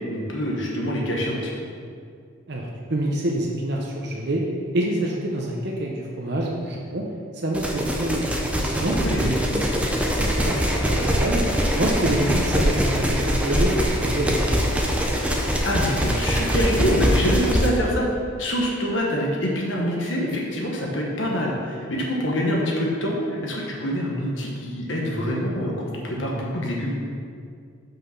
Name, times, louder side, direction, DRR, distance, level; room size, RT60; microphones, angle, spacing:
voice 1, 0.1-1.5 8.9-9.3 15.6-18.1 18.4-23.2 23.4-26.9, equal, 65° left, -2 dB, 1.2 m, -25 dB
voice 2, 2.5-4.4 4.7-7.1 7.3-11.4 11.8-14.6, right 1 dB, 50° right, -1 dB, 0.8 m, -26 dB
sound 1, 7.5-17.7, equal, 5° right, 0.6 m, -23 dB
5.9 x 5.5 x 5.8 m, 2.2 s
head